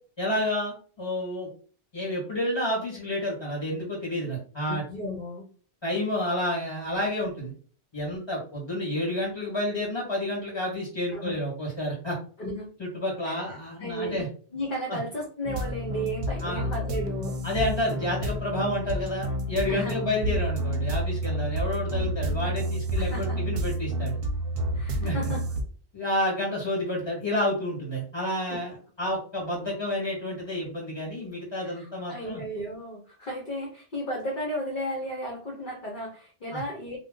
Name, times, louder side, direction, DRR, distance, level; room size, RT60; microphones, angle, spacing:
voice 1, 0.2-1.5 1.9-4.8 5.8-7.5 7.9-12.2 12.8-14.3 14.9-15.0 16.4-16.7 17.4-24.2 25.0-25.2 25.9-32.4 36.5-36.6, left 1 dB, 25° left, -2 dB, 1.6 m, -30 dB
voice 2, 4.7-5.5 11.1-11.3 12.4-12.7 13.2-13.4 13.8-14.3 14.5-17.4 19.7-20.1 22.9-23.4 24.7-25.4 28.2-28.6 31.6-37.0, equal, 50° left, -3 dB, 0.9 m, -34 dB
sound 1, 15.4-25.6, right 1 dB, 65° right, 0.7 m, -29 dB
2.6 x 2.2 x 3.7 m, 0.42 s
omnidirectional pair, 1.1 m